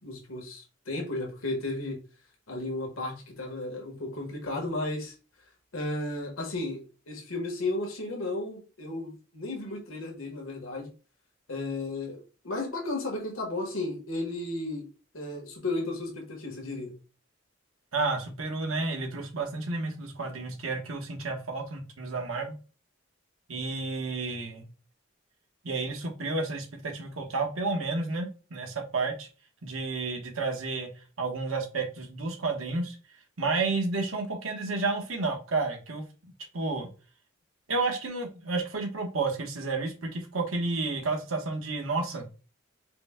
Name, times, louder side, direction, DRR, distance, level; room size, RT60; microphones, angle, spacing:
voice 1, 0.0-2.0 2.5-5.1 5.7-10.9 11.5-14.9 15.1-16.9, left 2 dB, 90° left, 1 dB, 1.4 m, -34 dB
voice 2, 17.9-22.5 23.5-24.7 25.6-29.3 29.6-30.9 31.2-33.0 33.4-36.0 36.5-36.9 37.7-42.3, right 3 dB, 90° right, 2 dB, 1.2 m, -31 dB
5.0 x 2.2 x 3.6 m, 0.33 s
head